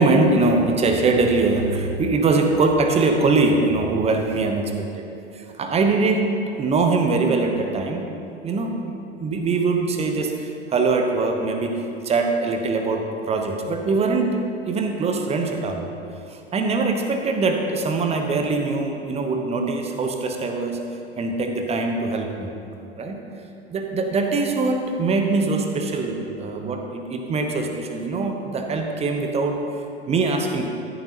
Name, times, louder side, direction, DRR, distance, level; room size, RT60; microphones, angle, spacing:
voice 1, 0.0-4.9 5.3-6.3 6.6-8.0 8.4-8.8 9.2-15.9 16.3-20.8 21.2-22.5 23.0-23.2 23.7-29.6 30.1-30.7, right 3 dB, 20° right, 4 dB, 1.0 m, -22 dB
14.0 x 10.5 x 3.0 m, 2.7 s
figure-of-eight pair, 90°, 31 cm